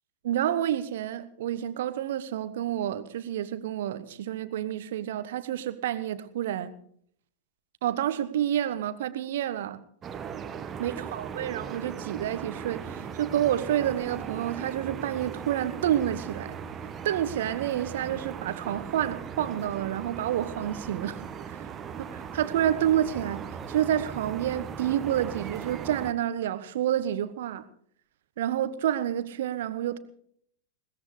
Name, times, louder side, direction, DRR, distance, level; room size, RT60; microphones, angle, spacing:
voice 1, 0.2-6.7 7.8-9.8 10.8-16.5 17.0-21.2 22.0-27.6 28.4-30.0, right 11 dB, 55° right, 1.2 m, -29 dB
sound 1, 10.0-26.1, right 7 dB, 25° right, 1.4 m, -38 dB
21.5 x 19.5 x 3.3 m
figure-of-eight pair, 90°, 0 cm